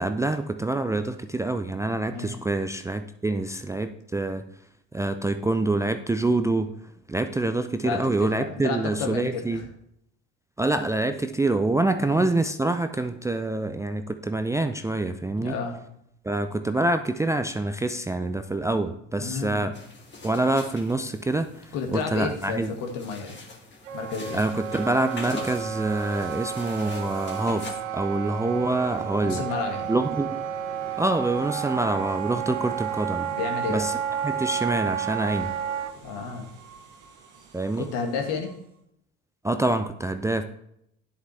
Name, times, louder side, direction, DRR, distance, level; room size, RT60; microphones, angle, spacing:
voice 1, 0.0-4.4 4.9-6.7 7.1-9.6 10.6-15.6 16.2-19.7 20.2-22.7 24.3-27.7 27.9-29.4 29.9-30.3 31.0-33.3 33.7-33.9 34.2-35.5 37.5-37.9 39.4-40.4, right 2 dB, 10° right, 8 dB, 0.4 m, -26 dB
voice 2, 7.8-9.7 12.0-12.2 15.4-15.8 19.2-19.7 21.7-23.4 23.9-24.4 29.2-29.9 33.3-33.9 36.0-36.5 37.8-38.6, left 5 dB, 60° left, 3 dB, 1.9 m, -31 dB
sound 1, 19.7-27.7, left 3 dB, 30° left, 2.2 m, -43 dB
Wind instrument woodwind instrument, 23.9-35.9, right 9 dB, 80° right, 0.6 m, -31 dB
sound 2, 24.0-38.8, right 6 dB, 65° right, 1.7 m, -46 dB
10.0 x 8.0 x 3.3 m, 0.74 s
figure-of-eight pair, 60°, 36 cm